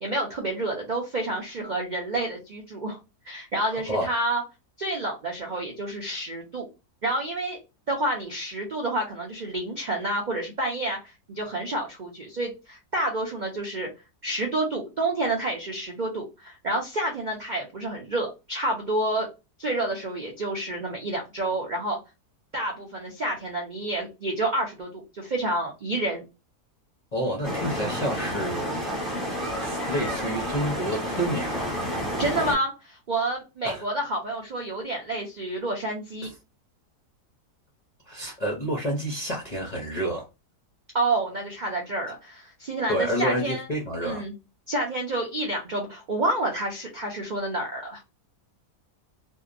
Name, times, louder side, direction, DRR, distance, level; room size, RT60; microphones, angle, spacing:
voice 1, 0.0-3.0 3.3-4.4 4.8-6.7 7.0-7.6 7.9-11.0 11.3-13.9 14.2-19.3 19.6-22.0 22.5-26.2 32.2-36.3 40.9-43.7 44.0-44.3 44.7-48.0, right 2 dB, 75° right, 1 dB, 0.4 m, -29 dB
voice 2, 27.1-28.8 29.6-31.8 33.6-33.8 38.1-40.2 42.9-44.2, equal, 50° left, -2 dB, 0.4 m, -29 dB
sound 1, 27.4-32.5, equal, ahead, 0.8 m, -30 dB
2.7 x 2.2 x 2.4 m, 0.27 s
omnidirectional pair, 1.7 m